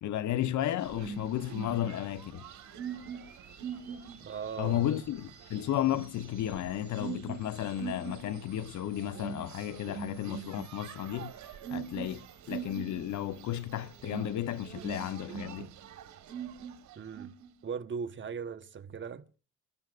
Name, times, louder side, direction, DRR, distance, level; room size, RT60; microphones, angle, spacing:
voice 1, 0.0-2.4 4.6-11.3 11.7-15.7, left 12 dB, 70° left, 0.8 m, -33 dB
sound 1, 0.8-17.5, right 7 dB, 70° right, 1.3 m, -43 dB
sound 2, 1.4-14.7, right 2 dB, 5° right, 2.9 m, -60 dB
voice 2, 4.2-4.8 16.9-17.3 17.6-19.4, right 6 dB, 40° right, 1.0 m, -38 dB
26.5 x 12.5 x 2.4 m
cardioid pair, 90°, 30 cm